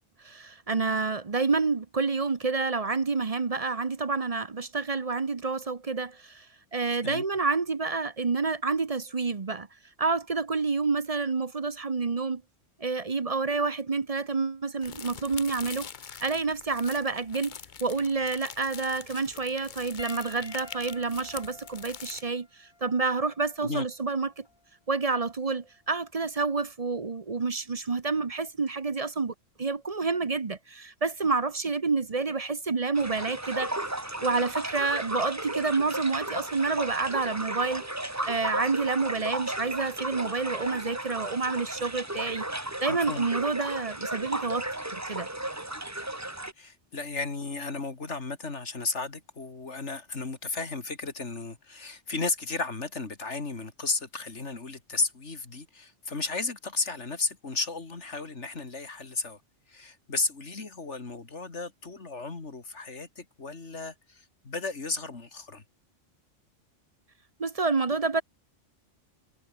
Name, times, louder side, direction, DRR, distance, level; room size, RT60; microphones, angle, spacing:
voice 1, 0.2-6.5 6.7-9.7 10.0-12.4 12.8-15.9 16.2-17.6 17.8-24.4 24.9-33.7 34.2-37.9 38.3-42.4 42.8-44.6 44.9-45.3 67.4-68.2, right 4 dB, 35° right, 0.9 m, -28 dB
sound 1, 14.8-22.2, left 7 dB, 45° left, 0.8 m, -44 dB
Piano, 20.0-24.7 25.6-25.8 27.7-27.8, left 2 dB, 20° left, 1.7 m, -49 dB
sound 2, 32.9-46.5, right 1 dB, 15° right, 1.7 m, -34 dB
voice 2, 42.9-43.3 46.6-59.4 59.7-65.6, left 3 dB, 65° left, 2.9 m, -34 dB
omnidirectional pair, 1.3 m